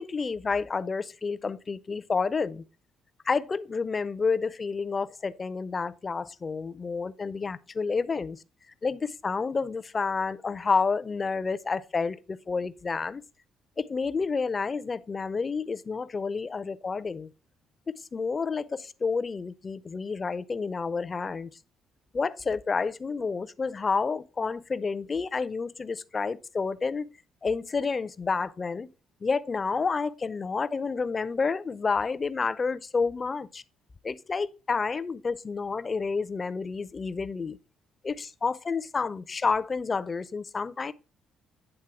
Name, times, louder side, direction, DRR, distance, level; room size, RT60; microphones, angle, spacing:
voice 1, 0.0-2.6 3.3-8.4 8.8-13.2 13.8-17.3 17.9-21.5 22.1-27.1 27.4-28.9 29.2-33.6 34.0-37.6 38.0-40.9, left 4 dB, 25° left, 0.4 m, -29 dB
8.9 x 3.6 x 4.8 m
cardioid pair, 140°, 0 cm